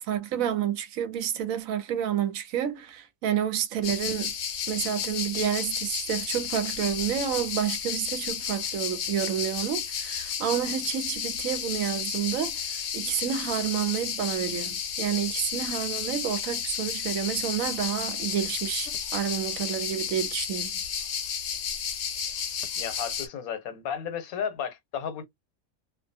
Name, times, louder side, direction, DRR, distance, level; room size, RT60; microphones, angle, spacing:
voice 1, 0.0-4.3 4.7-20.8, right 9 dB, 70° right, 1.0 m, -29 dB
sound 1, 3.8-23.3, left 7 dB, 60° left, 0.8 m, -32 dB
voice 2, 22.8-25.2, left 8 dB, 75° left, 1.1 m, -33 dB
2.5 x 2.3 x 2.6 m
omnidirectional pair, 1.5 m